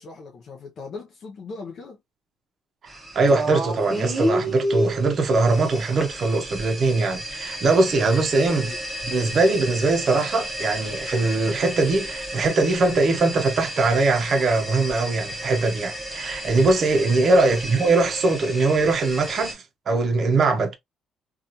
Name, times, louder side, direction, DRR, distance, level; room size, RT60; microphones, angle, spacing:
voice 1, 0.0-2.0 8.3-8.8 17.2-17.6, left 4 dB, 45° left, 0.5 m, -39 dB
sound 1, 2.9-19.5, equal, 5° right, 0.8 m, -32 dB
voice 2, 3.1-8.7 9.1-20.8, right 3 dB, 40° right, 0.6 m, -21 dB
2.8 x 2.3 x 2.5 m
cardioid pair, 170°, 0 cm